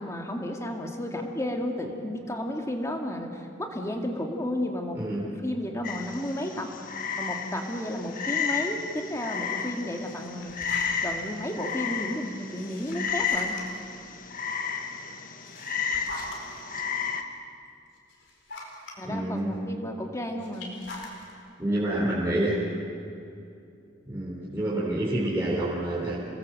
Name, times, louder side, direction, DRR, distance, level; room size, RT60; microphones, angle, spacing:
voice 1, 0.0-6.7 7.1-10.5 11.0-13.6 19.0-20.8, left 1 dB, 15° left, 2 dB, 2.2 m, -32 dB
voice 2, 4.9-5.3 19.0-19.5 21.6-22.6 24.1-26.1, right 1 dB, 15° right, -7 dB, 4.1 m, -28 dB
Frog, 5.8-17.2, left 6 dB, 45° left, 1.5 m, -32 dB
sound 1, 10.0-11.3 12.4-13.9 15.2-16.6 17.3-17.4 18.0-19.0 20.4-21.3, left 2 dB, 65° left, 4.6 m, -42 dB
27.5 x 20.5 x 7.8 m, 2.6 s
head